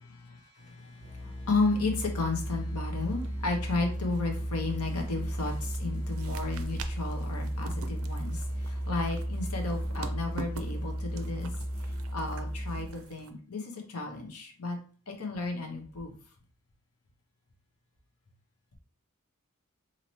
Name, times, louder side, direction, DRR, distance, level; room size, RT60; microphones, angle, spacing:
voice 1, 0.0-11.5 11.8-14.8 15.1-16.1, left 3 dB, 70° left, 2 dB, 0.9 m, -33 dB
Musical instrument, 1.0-13.0, equal, 35° right, 0.8 m, -34 dB
sound 1, 2.8-13.3, right 4 dB, 65° right, 0.4 m, -48 dB
4.1 x 2.8 x 3.1 m, 0.42 s
head